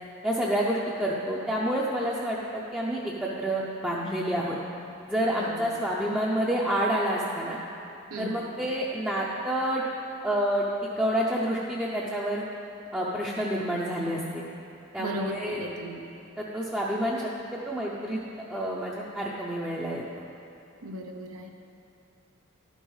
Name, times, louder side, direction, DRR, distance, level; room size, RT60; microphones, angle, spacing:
voice 1, 0.2-4.6 5.1-7.6 8.2-9.8 10.2-12.4 12.9-14.4 14.9-15.6 16.4-18.2 18.5-20.0, right 1 dB, 5° right, -6 dB, 0.5 m, -28 dB
voice 2, 5.3-5.8 8.1-8.5 15.0-16.1 20.8-21.5, right 1 dB, 85° right, 2 dB, 0.7 m, -36 dB
11.5 x 5.4 x 4.7 m, 2.7 s
head